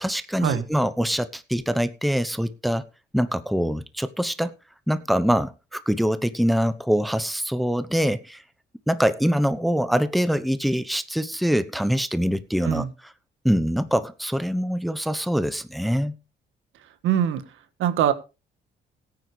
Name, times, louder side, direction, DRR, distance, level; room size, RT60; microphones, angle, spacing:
voice 1, 0.0-2.8 3.1-4.6 4.9-8.4 8.9-12.8 13.4-16.2, equal, ahead, 13 dB, 0.9 m, -24 dB
voice 2, 17.0-17.4 17.8-18.1, right 10 dB, 85° right, 10 dB, 1.5 m, -22 dB
17.0 x 9.4 x 3.4 m, 0.30 s
cardioid pair, 90°, 20 cm